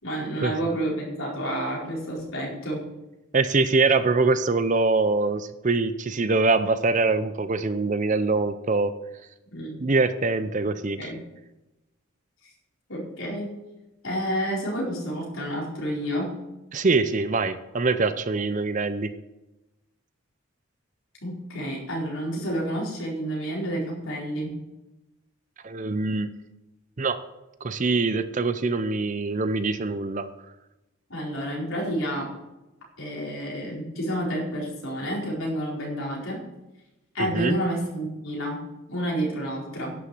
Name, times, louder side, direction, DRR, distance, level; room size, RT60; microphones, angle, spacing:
voice 1, 0.0-2.8 9.5-9.7 11.0-11.2 12.9-13.5 14.0-16.4 21.2-24.5 31.1-32.3 33.0-36.4 37.1-38.6 38.9-39.9, equal, 65° left, -3 dB, 4.5 m, -29 dB
voice 2, 3.3-8.9 9.8-11.1 16.7-19.1 25.6-26.3 27.0-27.2 27.6-30.3 37.2-37.6, right 3 dB, 35° right, 12 dB, 0.5 m, -24 dB
11.0 x 6.9 x 7.7 m, 0.98 s
head